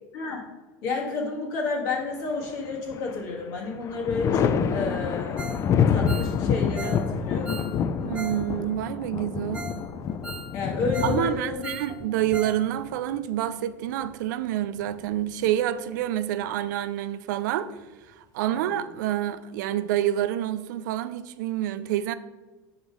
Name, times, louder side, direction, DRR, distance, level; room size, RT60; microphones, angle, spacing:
voice 1, 0.8-5.4 5.9-7.6 10.5-11.7 18.5-18.6, left 3 dB, 70° left, 1.8 m, -30 dB
Thunder, 2.4-3.2 3.6-13.2 14.6-15.5, left 7 dB, 30° left, 0.3 m, -27 dB
Ringtone, 5.4-5.7 5.9-8.4 8.7-8.8 9.2-9.3 9.5-9.8 10.1-11.2 11.5-12.6 12.9-13.0 13.4-13.5, right 3 dB, 10° right, 0.9 m, -39 dB
voice 2, 8.0-9.7 11.0-17.7 18.2-22.1, right 12 dB, 80° right, 0.4 m, -28 dB
5.5 x 4.0 x 4.7 m
supercardioid pair, 120°, 10 cm